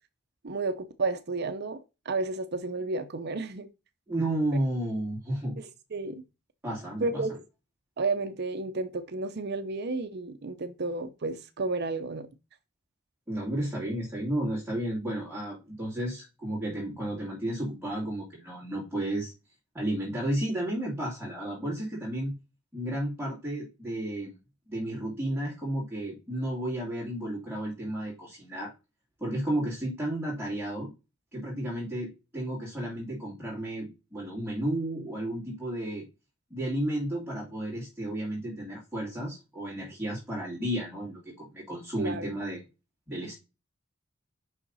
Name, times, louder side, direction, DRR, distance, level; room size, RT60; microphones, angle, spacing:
voice 1, 0.4-1.8 2.0-3.7 5.6-6.2 7.0-7.3 8.0-12.3 42.0-42.3, right 3 dB, 55° right, 0.7 m, -32 dB
voice 2, 4.1-5.6 6.6-7.2 13.3-19.3 19.7-22.3 22.7-24.4 24.7-28.7 29.2-30.9 31.3-36.0 36.5-42.6 43.1-43.3, right 1 dB, 5° right, 2.7 m, -32 dB
5.8 x 5.7 x 4.1 m
head